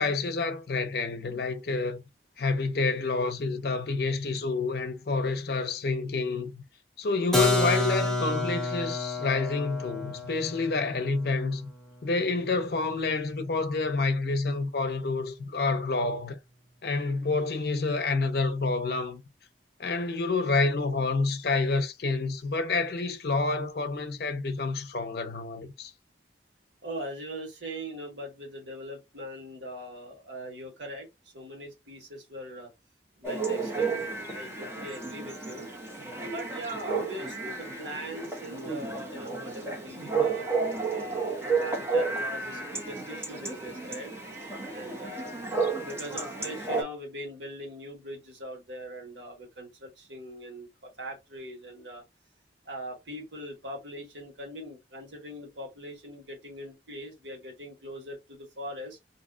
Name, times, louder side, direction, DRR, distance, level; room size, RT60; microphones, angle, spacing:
voice 1, 0.0-2.0 2.4-6.6 7.0-11.7 12.0-16.4 16.8-19.2 19.8-25.9, left 3 dB, 60° left, 0.6 m, -28 dB
Keyboard (musical), 7.3-12.9, left 2 dB, ahead, 0.5 m, -30 dB
voice 2, 26.8-31.1 31.3-32.7 33.2-34.1 34.3-35.7 36.3-40.5 40.9-44.1 44.7-45.3 45.8-52.0 52.6-59.0, equal, 80° right, 1.4 m, -41 dB
Chatter / Bark / Livestock farm animals working animals, 33.2-46.8, right 4 dB, 15° right, 0.9 m, -32 dB
2.7 x 2.3 x 3.7 m
head